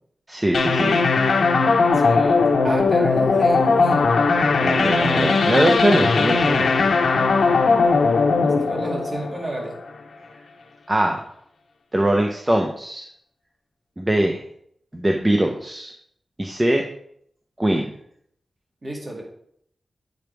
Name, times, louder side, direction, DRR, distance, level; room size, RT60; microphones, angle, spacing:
voice 1, 0.3-1.0 4.6-6.9 10.9-11.3 11.9-13.0 14.0-14.4 14.9-15.9 16.4-16.8 17.6-17.9, right 1 dB, 15° right, 3 dB, 0.6 m, -21 dB
sound 1, 0.5-9.9, left 4 dB, 85° left, 0.8 m, -19 dB
voice 2, 1.9-4.1 8.4-9.8 18.8-19.2, right 1 dB, 35° right, -2 dB, 2.3 m, -32 dB
8.7 x 5.2 x 4.5 m, 0.69 s
wide cardioid pair, 145°, 0 cm